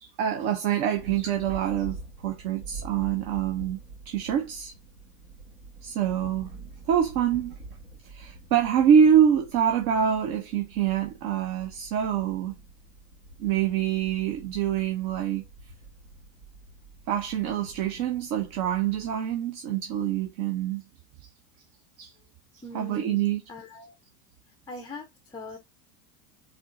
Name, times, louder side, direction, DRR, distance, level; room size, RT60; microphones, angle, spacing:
voice 1, 0.0-3.8 4.1-4.7 5.8-6.5 6.9-7.6 8.1-12.5 13.4-15.4 17.1-20.8 22.0-22.1 22.7-23.4, right 8 dB, 50° right, 0.8 m, -25 dB
sound 1, 0.9-19.2, right 3 dB, 80° right, 1.8 m, -46 dB
voice 2, 22.6-23.2 23.5-23.9 24.7-25.6, left 2 dB, 10° left, 0.5 m, -41 dB
4.3 x 2.0 x 2.5 m
hypercardioid pair, 95°, 48 cm